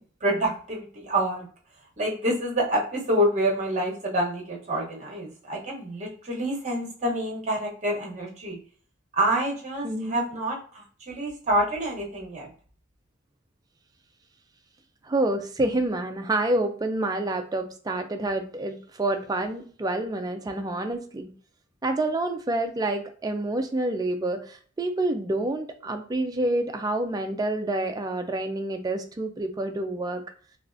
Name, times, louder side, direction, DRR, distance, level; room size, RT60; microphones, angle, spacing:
voice 1, 0.0-1.5 2.0-8.6 9.1-12.5, right 1 dB, 35° right, -1 dB, 0.9 m, -27 dB
voice 2, 9.8-10.2 15.1-21.3 21.8-30.2, right 2 dB, 20° right, 5 dB, 0.3 m, -28 dB
3.4 x 2.4 x 2.5 m, 0.43 s
head